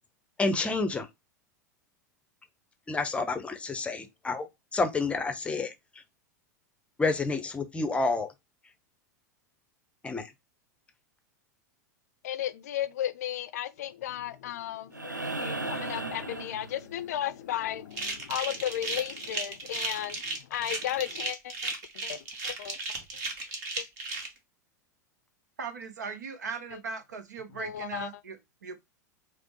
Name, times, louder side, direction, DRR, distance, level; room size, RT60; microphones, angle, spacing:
voice 1, 0.4-1.1 2.9-4.5 4.7-5.7 7.0-8.3 10.0-10.2, left 3 dB, 10° left, 0.6 m, -29 dB
voice 2, 12.2-22.8 23.8-23.9 26.7-26.8 27.6-28.1, left 12 dB, 60° left, 0.4 m, -35 dB
sound 1, 14.9-17.2 19.1-19.2, right 2 dB, 90° right, 0.4 m, -36 dB
Cable Covers, 17.9-24.3, right 3 dB, 50° right, 1.2 m, -35 dB
voice 3, 25.6-28.8, right 5 dB, 70° right, 0.8 m, -39 dB
5.0 x 2.0 x 2.9 m
figure-of-eight pair, 90°, 10 cm